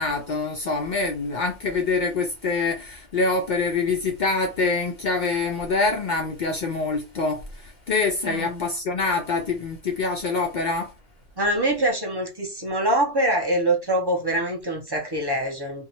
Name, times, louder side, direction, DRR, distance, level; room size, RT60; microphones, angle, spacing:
voice 1, 0.0-10.9, left 3 dB, 75° left, 0.4 m, -25 dB
voice 2, 8.2-8.6 11.4-15.8, right 1 dB, 35° right, 0.4 m, -24 dB
2.7 x 2.2 x 2.8 m
omnidirectional pair, 1.3 m